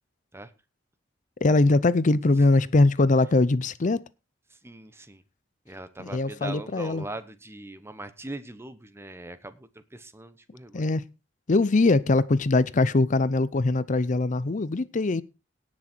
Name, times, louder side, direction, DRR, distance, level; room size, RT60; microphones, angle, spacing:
voice 1, 1.4-4.0 6.0-7.1 10.7-11.0 11.5-15.2, left 2 dB, 40° left, 0.5 m, -22 dB
voice 2, 4.6-5.2 5.7-10.8, right 1 dB, 15° right, 1.0 m, -41 dB
18.0 x 6.3 x 4.4 m
head